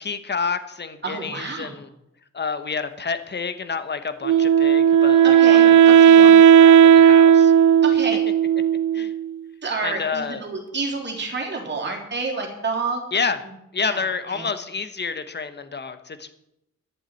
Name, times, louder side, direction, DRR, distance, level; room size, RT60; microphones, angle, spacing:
voice 1, 0.0-1.9 2.3-7.5 8.9-9.1 9.8-10.4 13.1-13.4 13.7-16.3, left 5 dB, 35° left, 10 dB, 1.2 m, -29 dB
voice 2, 1.0-1.8 5.2-6.4 7.8-8.3 9.6-13.0 13.4-13.5 13.9-14.5, right 4 dB, 35° right, 1 dB, 3.6 m, -29 dB
Wind instrument woodwind instrument, 4.2-9.3, right 8 dB, 85° right, 0.5 m, -13 dB
11.5 x 7.5 x 9.2 m, 0.82 s
wide cardioid pair, 125°, 30 cm